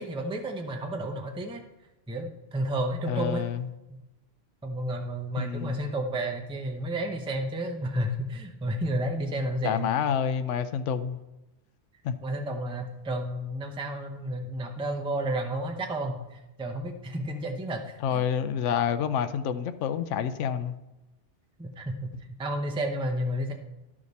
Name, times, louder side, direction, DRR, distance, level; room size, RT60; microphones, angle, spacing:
voice 1, 0.0-1.6 2.1-3.4 4.6-9.9 12.2-18.2 21.6-23.5, right 1 dB, 5° right, 3 dB, 0.6 m, -31 dB
voice 2, 3.1-3.7 5.4-5.8 9.6-11.2 12.0-12.2 18.0-20.8, left 8 dB, 80° left, 11 dB, 0.9 m, -28 dB
12.5 x 5.0 x 4.1 m, 0.97 s
omnidirectional pair, 1.2 m